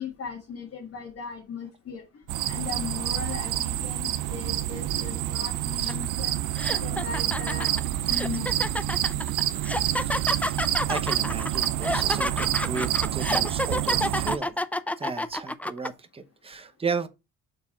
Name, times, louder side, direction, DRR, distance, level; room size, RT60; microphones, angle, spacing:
voice 1, 0.0-2.0 2.5-6.3 6.8-7.7 8.0-8.6, left 6 dB, 50° left, 1.6 m, -37 dB
sound 1, 2.3-14.4, right 13 dB, 90° right, 0.6 m, -28 dB
sound 2, 5.9-6.1 6.6-15.9, left 1 dB, 5° left, 0.4 m, -29 dB
voice 2, 10.1-10.6 10.9-14.6 15.0-17.1, right 5 dB, 20° right, 0.9 m, -34 dB
6.6 x 3.7 x 4.4 m
cardioid pair, 90°, 30 cm